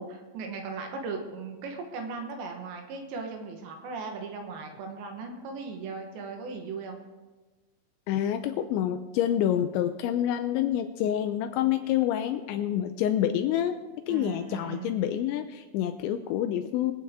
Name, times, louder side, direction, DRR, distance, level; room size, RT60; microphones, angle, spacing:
voice 1, 0.0-7.0 14.1-14.9, right 4 dB, 70° right, 3 dB, 3.2 m, -37 dB
voice 2, 8.1-13.8 14.1-16.9, left 11 dB, 85° left, 8 dB, 2.7 m, -27 dB
23.0 x 8.6 x 3.6 m, 1.2 s
omnidirectional pair, 5.6 m